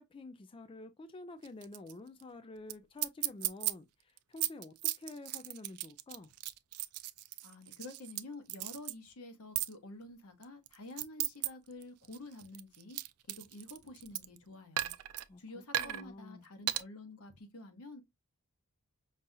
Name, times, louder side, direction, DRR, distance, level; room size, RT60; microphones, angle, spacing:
voice 1, 0.0-6.3 15.3-16.5, left 2 dB, 25° left, 0.3 m, -49 dB
sound 1, 1.4-1.9 2.2-2.3 2.7-2.8 3.0-3.7 4.2-8.2 8.5-8.9 9.6-9.7 10.4-11.5 11.8-14.4 14.8-15.2 15.7-16.0 16.7-16.8, right 15 dB, 80° right, 0.4 m, -35 dB
voice 2, 7.4-13.0 13.3-14.9 15.4-18.0, left 2 dB, 80° left, 1.0 m, -49 dB
5.4 x 2.4 x 2.6 m
head